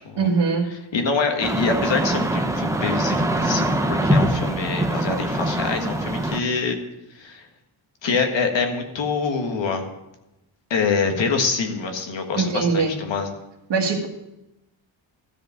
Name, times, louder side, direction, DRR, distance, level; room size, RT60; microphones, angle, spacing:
voice 1, 0.2-0.7 12.3-13.0 13.7-14.1, right 4 dB, 60° right, 3 dB, 1.7 m, -21 dB
voice 2, 0.9-3.6 3.9-6.8 7.1-7.4 8.0-9.9 10.7-13.3, left 5 dB, 65° left, 5 dB, 1.7 m, -25 dB
sound 1, 1.4-6.4, right 1 dB, 5° right, 0.6 m, -23 dB
13.5 x 5.1 x 8.8 m, 0.92 s
wide cardioid pair, 175°, 47 cm